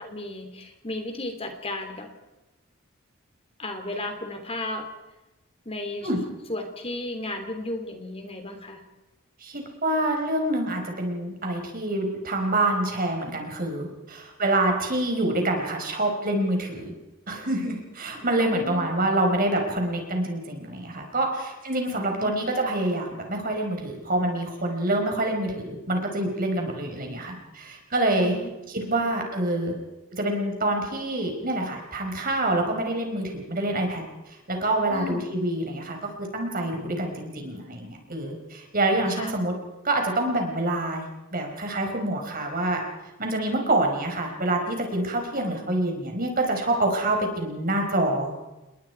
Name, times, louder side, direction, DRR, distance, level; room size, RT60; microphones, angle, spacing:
voice 1, 0.0-2.1 3.6-4.9 5.6-6.1 6.5-8.8 18.4-18.8 21.9-22.3 28.2-28.5 34.9-35.2 39.2-39.3, left 2 dB, 25° left, 5 dB, 3.1 m, -34 dB
voice 2, 9.4-16.9 17.3-28.4 28.7-29.7 30.1-36.0 36.3-39.5 39.8-41.1 41.3-42.8 43.2-48.3, right 1 dB, 40° right, 3 dB, 4.8 m, -26 dB
29.0 x 21.5 x 4.7 m, 1.0 s
head